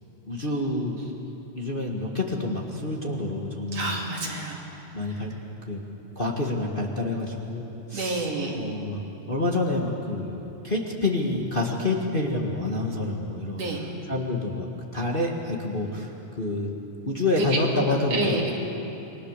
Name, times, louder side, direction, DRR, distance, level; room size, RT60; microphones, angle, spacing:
voice 1, 0.3-1.2 1.5-4.0 4.9-5.3 5.7-5.8 6.1-8.3 8.5-13.6 14.1-14.7 14.9-16.1 16.4-16.7 17.1-18.4, left 2 dB, 25° left, -1 dB, 1.5 m, -28 dB
voice 2, 3.7-4.7 7.9-8.6 13.6-13.8 17.4-17.9 18.1-18.5, right 2 dB, 55° right, -1 dB, 3.8 m, -28 dB
29.0 x 21.5 x 6.8 m, 3.0 s
omnidirectional pair, 3.3 m